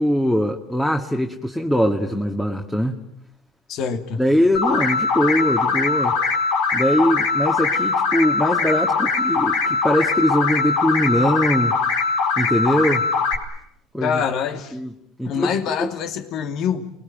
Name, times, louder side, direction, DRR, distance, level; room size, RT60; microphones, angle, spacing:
voice 1, 0.0-3.0 4.2-6.2 6.7-11.8 12.4-13.0 13.9-14.2 14.7-14.9 15.2-15.9, equal, 5° left, 3 dB, 1.9 m, -21 dB
voice 2, 3.7-4.2 14.0-14.8 15.2-16.9, left 7 dB, 60° left, 7 dB, 2.7 m, -25 dB
sound 1, 4.5-13.3, left 4 dB, 80° left, 4.7 m, -21 dB
29.5 x 21.0 x 9.2 m, 0.77 s
supercardioid pair, 100°, 0 cm